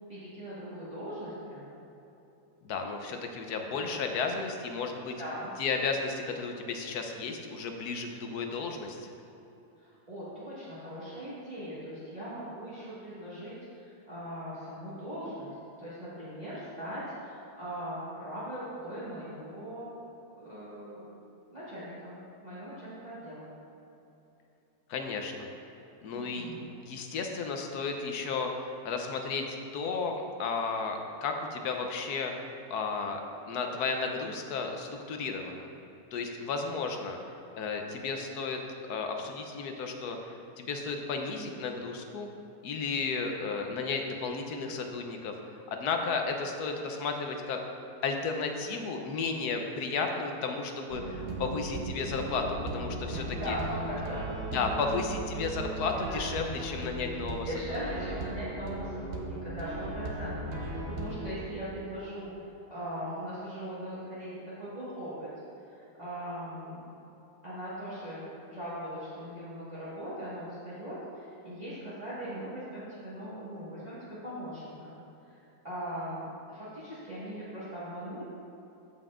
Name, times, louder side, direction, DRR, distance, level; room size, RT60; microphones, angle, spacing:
voice 1, 0.1-1.7 5.2-5.5 9.8-19.9 20.3-21.1 21.5-23.5 26.1-26.7 53.3-54.6 56.0-56.2 57.4-62.3 62.7-65.3 65.6-66.8 67.4-75.0 75.3-75.4 75.6-78.2, equal, 25° right, -12 dB, 1.8 m, -40 dB
voice 2, 2.6-5.1 5.6-9.1 24.9-25.5 26.0-26.5 26.8-32.3 32.7-35.7 36.1-37.2 37.6-38.6 38.9-42.3 42.6-45.3 45.7-47.6 48.0-53.6 54.5-57.8, left 4 dB, 85° left, 4 dB, 1.3 m, -33 dB
sound 1, 50.9-61.3, right 2 dB, 50° right, 0.8 m, -37 dB
14.5 x 5.5 x 2.5 m, 3.0 s
omnidirectional pair, 1.6 m